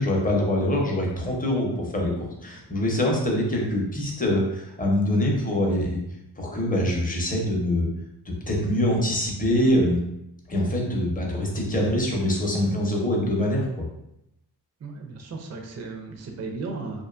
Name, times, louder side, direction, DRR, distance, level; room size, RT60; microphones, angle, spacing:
voice 1, 0.0-6.0 6.4-7.9 8.3-10.0 10.5-13.8, left 1 dB, 20° left, -1 dB, 0.6 m, -24 dB
voice 2, 14.8-17.0, right 3 dB, 40° right, 2 dB, 0.4 m, -35 dB
2.5 x 2.2 x 2.4 m, 0.82 s
wide cardioid pair, 75°, 40 cm